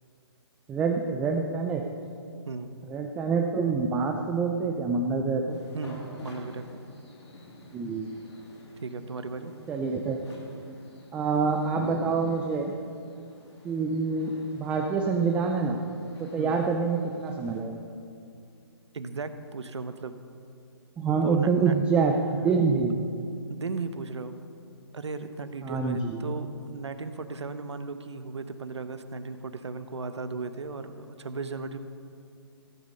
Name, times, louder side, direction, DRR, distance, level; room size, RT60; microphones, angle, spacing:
voice 1, 0.7-1.8 2.9-5.6 7.7-8.1 9.7-10.2 11.1-12.7 13.6-15.8 16.2-17.8 21.0-23.0 25.6-26.2, right 4 dB, 10° right, 3 dB, 0.4 m, -26 dB
sound 1, 5.5-17.6, left 1 dB, 80° left, 3.2 m, -46 dB
voice 2, 5.7-6.8 8.8-9.5 16.4-16.5 18.9-20.2 21.2-21.9 23.5-24.4 24.9-31.8, right 4 dB, 85° right, 10 dB, 1.0 m, -36 dB
15.0 x 8.6 x 5.3 m, 2.4 s
hypercardioid pair, 150°, 14 cm